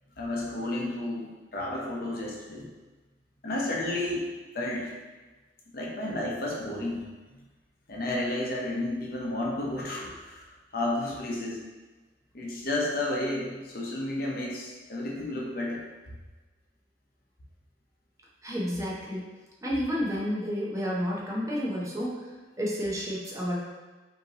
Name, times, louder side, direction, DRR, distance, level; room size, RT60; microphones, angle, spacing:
voice 1, 0.2-2.7 3.4-4.2 4.5-4.9 5.7-7.0 7.9-10.5 10.7-11.6 12.3-15.8, left 1 dB, 55° left, -2 dB, 0.8 m, -31 dB
voice 2, 18.4-19.3 19.6-22.3 22.6-23.6, equal, 20° right, -5 dB, 0.7 m, -30 dB
5.4 x 2.9 x 2.9 m, 1.3 s
head